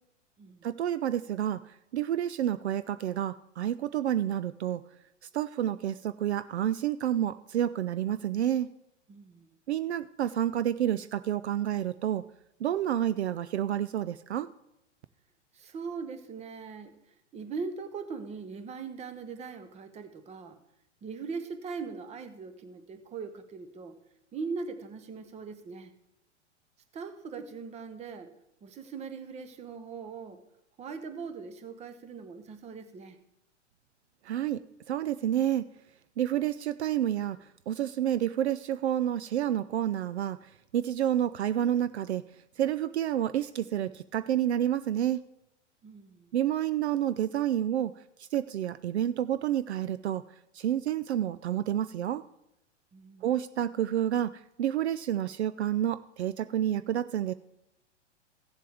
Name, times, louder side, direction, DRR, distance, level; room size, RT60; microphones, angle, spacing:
voice 1, 0.6-4.8 5.3-8.7 9.7-12.2 12.6-14.5 34.2-35.7 36.2-42.2 42.6-45.2 46.3-47.9 48.2-50.2 50.5-52.2 53.2-57.3, right 11 dB, 65° right, 15 dB, 0.5 m, -29 dB
voice 2, 9.1-9.6 15.5-16.9 17.3-20.6 21.0-23.9 24.3-25.9 26.9-28.3 28.6-30.4 30.8-33.2 45.8-46.3 52.9-53.3, right 5 dB, 20° right, 9 dB, 0.9 m, -40 dB
15.5 x 7.4 x 3.5 m, 0.85 s
figure-of-eight pair, 105°, 36 cm